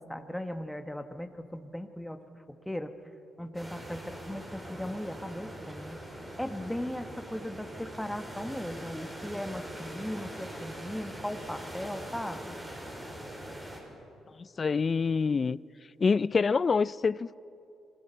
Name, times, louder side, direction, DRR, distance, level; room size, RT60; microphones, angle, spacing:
voice 1, 0.0-2.2 2.6-2.9 3.4-6.0 6.4-12.6, left 1 dB, 5° left, 1.2 m, -38 dB
sound 1, 3.5-13.8, equal, 15° right, 4.8 m, -42 dB
voice 2, 14.4-15.6 16.0-17.4, left 5 dB, 35° left, 0.4 m, -26 dB
27.5 x 19.5 x 5.6 m
cardioid pair, 90°, 0 cm